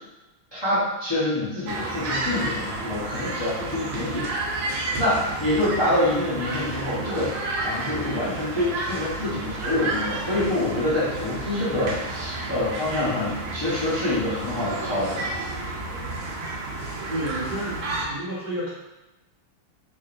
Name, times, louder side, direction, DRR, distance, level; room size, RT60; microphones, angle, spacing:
voice 1, 0.5-4.3 5.0-7.3 7.6-15.3, left 1 dB, 40° left, -11 dB, 0.3 m, -26 dB
sound 1, 1.7-18.0, right 2 dB, 85° right, 1.7 m, -31 dB
voice 2, 17.1-18.7, right 1 dB, 60° right, -11 dB, 0.5 m, -31 dB
3.7 x 3.3 x 2.5 m, 1.0 s
omnidirectional pair, 2.4 m